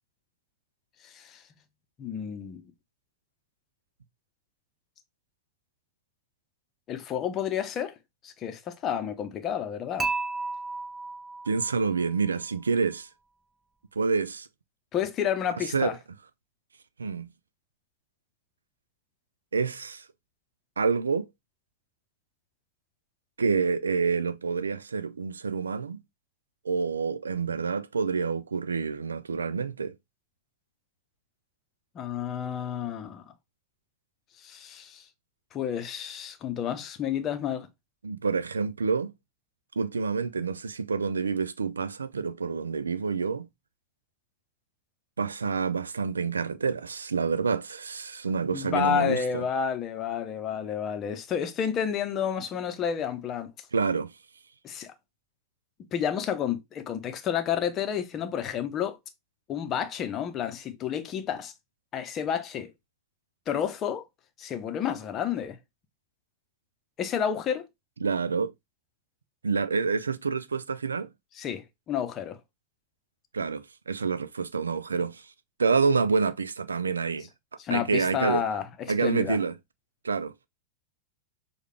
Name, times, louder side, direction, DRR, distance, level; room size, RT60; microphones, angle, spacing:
voice 1, 1.0-1.4 2.0-2.7 6.9-8.0 8.2-10.1 14.9-16.0 31.9-33.2 34.4-35.0 35.5-37.7 48.5-53.5 54.6-54.9 55.9-59.0 59.5-61.5 61.9-62.7 63.5-64.0 64.4-65.6 67.0-67.7 71.4-72.4 77.6-78.7 79.0-79.4, left 8 dB, 30° left, 0.8 m, -30 dB
Dishes pots and pans / Chink clink, 10.0-12.1, right 3 dB, 15° right, 0.9 m, -33 dB
voice 2, 11.5-13.1 14.0-14.5 15.7-15.9 17.0-17.3 19.5-20.1 20.8-21.3 23.4-26.0 26.6-29.9 38.0-39.1 39.8-43.5 45.2-49.4 53.7-54.1 68.0-68.5 69.4-71.1 73.3-75.3 75.6-77.3 77.7-78.4 78.9-79.5 80.0-80.5, right 5 dB, 75° right, 0.4 m, -28 dB
6.4 x 2.4 x 3.3 m
figure-of-eight pair, 90°, 0 cm